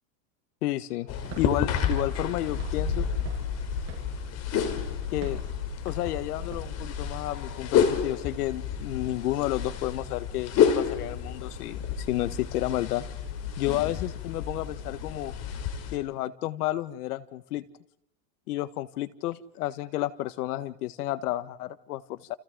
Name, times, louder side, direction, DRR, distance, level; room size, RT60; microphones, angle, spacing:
voice 1, 0.6-1.1 1.4-3.1 5.1-5.4 5.9-13.0 13.6-15.3 15.9-17.6 18.5-22.4, left 15 dB, 65° left, 13 dB, 1.7 m, -31 dB
sound 1, 1.1-16.0, left 7 dB, 30° left, 3.3 m, -30 dB
Walk footsteps / Siren, 1.1-6.8, right 8 dB, 30° right, 6.9 m, -48 dB
30.0 x 29.0 x 3.9 m, 0.79 s
supercardioid pair, 160°, 49 cm